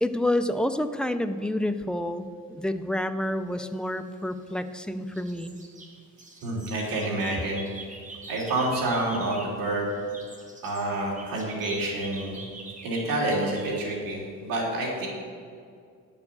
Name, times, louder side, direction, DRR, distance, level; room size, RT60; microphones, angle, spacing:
voice 1, 0.0-5.6, left 1 dB, 5° left, 8 dB, 0.3 m, -28 dB
sound 1, 4.0-4.8 5.1-9.6 9.9-13.9, right 2 dB, 25° right, 1.3 m, -45 dB
voice 2, 6.4-7.6 8.3-9.9 10.6-12.4 12.8-15.1, right 2 dB, 85° right, -3 dB, 3.0 m, -28 dB
10.5 x 7.1 x 6.8 m, 2.2 s
cardioid pair, 150°, 33 cm